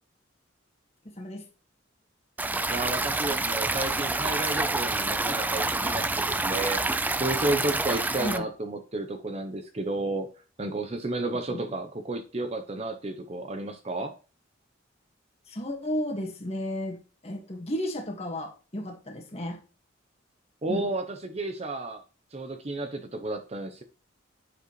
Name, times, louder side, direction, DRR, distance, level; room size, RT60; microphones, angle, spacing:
voice 1, 1.1-1.5 8.2-8.5 11.5-11.6 15.5-17.0 17.2-19.6 20.7-20.9, left 1 dB, 30° left, 1 dB, 1.8 m, -33 dB
Stream, 2.4-8.4, right 2 dB, 10° right, 0.3 m, -28 dB
voice 2, 2.7-6.8 7.2-10.3 10.6-14.1 20.6-22.0 22.3-23.8, right 2 dB, 30° right, 6 dB, 0.8 m, -32 dB
9.5 x 7.3 x 3.2 m, 0.34 s
head